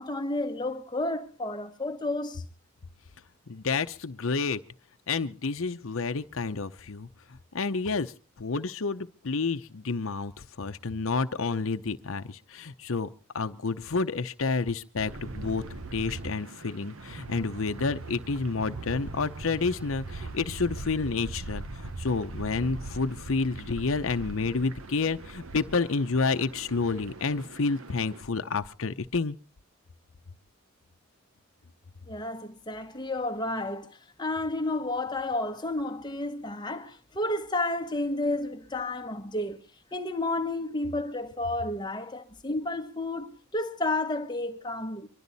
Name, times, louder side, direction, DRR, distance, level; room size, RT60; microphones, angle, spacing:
voice 1, 0.0-2.4 32.1-33.9 34.2-39.6 39.9-45.1, left 2 dB, 20° left, 1.2 m, -31 dB
voice 2, 3.5-4.6 5.1-7.1 7.5-8.1 8.4-10.3 10.6-13.1 13.3-15.6 15.9-21.6 22.0-29.4, left 4 dB, 70° left, 0.7 m, -29 dB
sound 1, 15.0-28.2, right 2 dB, 80° right, 1.0 m, -41 dB
24.0 x 12.5 x 4.1 m
head